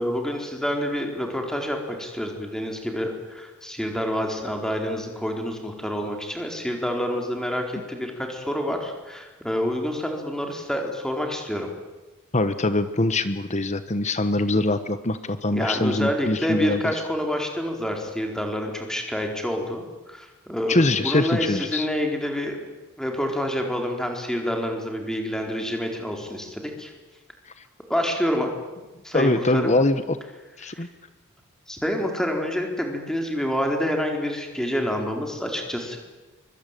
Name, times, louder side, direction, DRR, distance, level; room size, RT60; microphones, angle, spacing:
voice 1, 0.0-11.7 15.5-22.6 23.0-26.9 27.9-28.5 29.0-29.7 30.6-30.9 31.7-36.0, equal, 5° left, 2 dB, 4.2 m, -28 dB
voice 2, 12.3-16.9 20.7-21.9 29.1-30.2 30.6-30.9, left 2 dB, 30° left, 11 dB, 1.1 m, -23 dB
24.5 x 24.0 x 9.2 m, 1.2 s
head